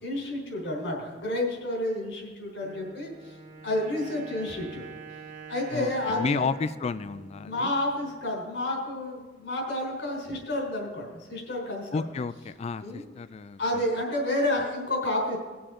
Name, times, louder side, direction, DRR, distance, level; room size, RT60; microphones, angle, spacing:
voice 1, 0.0-3.3 3.6-4.9 5.5-6.5 7.4-12.0 12.8-13.0 13.6-15.4, left 1 dB, 75° left, -1 dB, 3.8 m, -30 dB
Wind instrument woodwind instrument, 2.6-8.3, right 5 dB, 50° right, 1.4 m, -46 dB
voice 2, 5.7-7.7 11.9-13.8, left 4 dB, 35° left, 13 dB, 0.3 m, -32 dB
19.5 x 7.0 x 3.7 m, 1.3 s
head